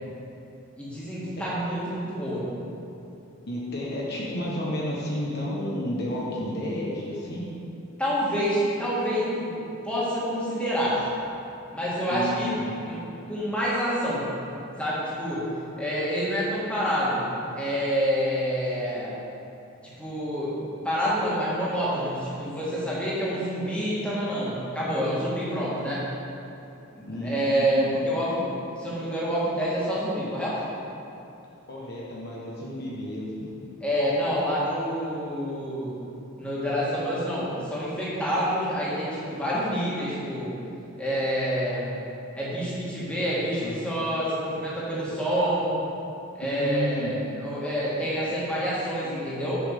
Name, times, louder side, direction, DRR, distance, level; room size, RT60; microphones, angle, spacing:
voice 1, 0.8-2.5 8.0-11.1 11.7-13.0 13.3-14.3 14.8-15.4 15.8-19.2 19.8-26.0 26.9-30.6 33.8-36.0 36.4-40.6 41.0-41.9 42.3-45.8 46.3-49.6, equal, 5° left, -8 dB, 1.9 m, -27 dB
voice 2, 3.5-7.5 12.1-12.7 25.2-25.3 27.1-28.0 31.7-33.5 43.6-43.7 46.6-47.1, left 1 dB, 50° left, -5 dB, 1.2 m, -31 dB
7.0 x 5.8 x 6.7 m, 2.8 s
head